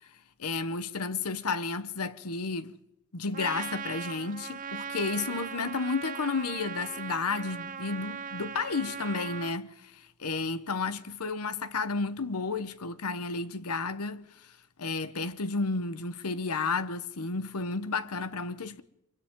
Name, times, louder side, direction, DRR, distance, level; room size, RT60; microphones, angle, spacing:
voice 1, 0.4-2.8 3.1-14.5 14.8-18.8, left 4 dB, 85° left, 1.1 m, -32 dB
Trumpet, 3.3-9.6, right 6 dB, 40° right, 0.7 m, -39 dB
29.5 x 25.0 x 3.8 m
head